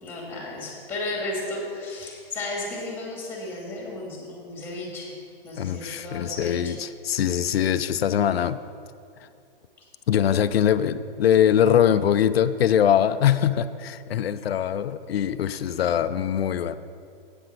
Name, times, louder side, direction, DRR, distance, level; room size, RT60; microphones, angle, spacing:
voice 1, 0.0-5.2 5.4-6.7, left 2 dB, 5° left, -2 dB, 2.5 m, -34 dB
voice 2, 5.6-8.6 10.1-16.8, left 9 dB, 90° left, 11 dB, 0.5 m, -22 dB
8.6 x 7.9 x 6.6 m, 2.4 s
hypercardioid pair, 150°, 29 cm